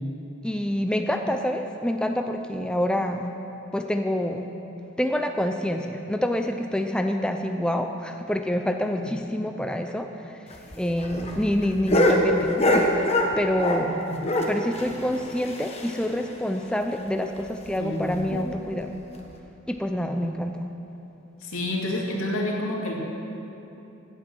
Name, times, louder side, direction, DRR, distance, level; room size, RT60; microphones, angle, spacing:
voice 1, 0.4-3.3 3.7-4.5 5.0-10.4 10.8-13.9 14.5-18.9 19.7-20.6, left 1 dB, 5° left, 5 dB, 0.4 m, -27 dB
sound 1, 10.5-13.9 14.2-16.2 16.5-16.6 16.9-17.0 17.4-17.5 18.1-18.4 19.2-19.3, left 1 dB, 30° left, 1.2 m, -24 dB
voice 2, 13.8-14.2 17.8-18.5 20.0-20.2 21.4-22.9, left 1 dB, 85° left, -2 dB, 2.5 m, -30 dB
16.0 x 8.8 x 6.1 m, 2.9 s
head